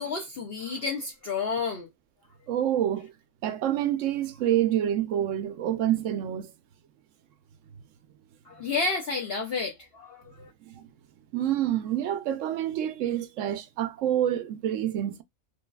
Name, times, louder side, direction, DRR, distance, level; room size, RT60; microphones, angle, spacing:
voice 1, 0.0-1.9 8.4-10.5, left 4 dB, 60° left, 0.7 m, -31 dB
voice 2, 2.5-3.1 3.4-6.5 10.6-10.9 11.3-15.2, right 11 dB, 70° right, 0.9 m, -27 dB
3.3 x 2.3 x 2.2 m
omnidirectional pair, 1.5 m